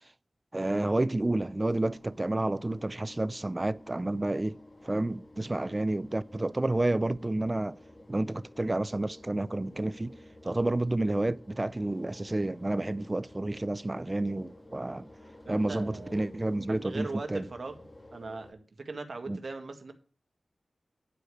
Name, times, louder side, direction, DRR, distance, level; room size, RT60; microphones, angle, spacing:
voice 1, 0.5-4.6 4.8-7.8 8.1-10.1 10.4-15.1 15.5-17.4 19.3-19.4, right 2 dB, 25° right, 0.4 m, -30 dB
sound 1, 1.3-18.5, left 1 dB, 30° left, 1.9 m, -52 dB
voice 2, 15.5-16.3 16.8-17.8 18.1-19.9, right 3 dB, 60° right, 1.7 m, -40 dB
11.0 x 4.9 x 8.3 m
wide cardioid pair, 75°, 0 cm